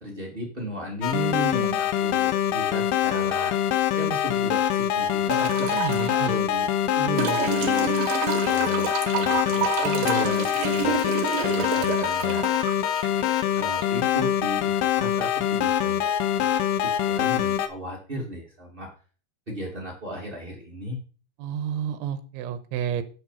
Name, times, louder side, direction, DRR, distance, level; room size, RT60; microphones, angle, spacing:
voice 1, 0.0-3.5 3.9-6.7 6.9-7.9 8.5-11.0 11.4-12.4 13.5-16.1 16.8-18.9 19.5-21.0, equal, 35° right, -1 dB, 0.8 m, -34 dB
sound 1, 1.0-17.7, left 11 dB, 80° left, 2.3 m, -24 dB
sound 2, 5.3-6.1 7.2-14.2 15.5-15.6, right 9 dB, 70° right, 2.2 m, -30 dB
voice 2, 5.7-6.4 21.4-23.0, right 8 dB, 90° right, 10 dB, 3.3 m, -30 dB
10.5 x 6.9 x 5.6 m, 0.39 s
omnidirectional pair, 5.4 m